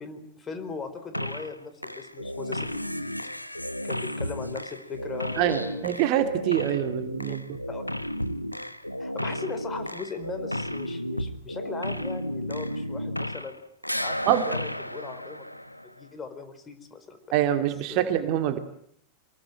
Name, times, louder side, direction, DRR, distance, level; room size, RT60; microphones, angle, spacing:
voice 1, 0.0-2.8 3.8-6.0 7.3-7.4 7.7-7.8 9.0-13.6 13.9-15.5 16.0-17.2 17.9-18.1, left 5 dB, 20° left, 9 dB, 4.4 m, -39 dB
sound 1, 1.1-1.6 1.8-13.6 13.8-16.0, equal, 90° left, 1.2 m, -33 dB
voice 2, 5.4-7.4 14.3-14.4 17.3-18.6, right 12 dB, 45° right, 8 dB, 2.4 m, -25 dB
25.5 x 22.0 x 9.0 m, 0.67 s
figure-of-eight pair, 90°, 0 cm